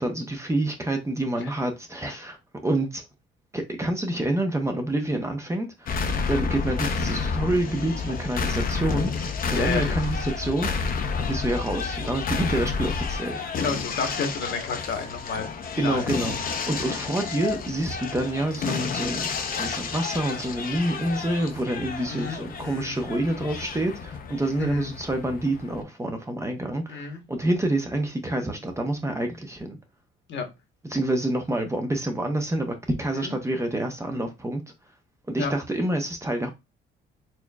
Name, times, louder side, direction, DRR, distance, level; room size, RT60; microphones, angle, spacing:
voice 1, 0.0-2.4 2.6-3.0 3.5-6.0 6.3-10.7 11.3-13.4 15.7-19.3 19.5-29.8 30.9-34.6 35.3-36.5, right 1 dB, 15° right, 0.7 m, -27 dB
sound 1, 5.9-25.8, left 5 dB, 45° left, 0.6 m, -30 dB
voice 2, 9.5-10.0 13.6-15.5 15.8-16.0 22.1-23.0 24.6-24.9 26.9-27.2 30.3-30.5 33.2-33.3 35.4-35.5, left 5 dB, 60° left, 1.1 m, -31 dB
4.3 x 2.9 x 2.3 m
cardioid pair, 120°, 21 cm